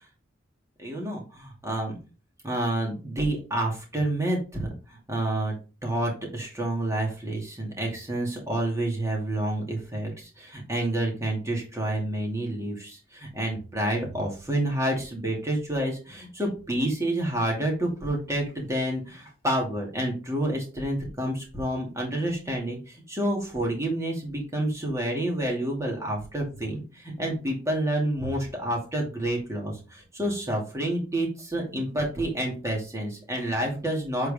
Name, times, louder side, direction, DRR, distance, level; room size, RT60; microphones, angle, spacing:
voice 1, 0.8-2.0 2.4-5.5 5.8-34.3, right 1 dB, 15° right, -1 dB, 2.6 m, -29 dB
8.0 x 4.7 x 3.7 m, 0.33 s
head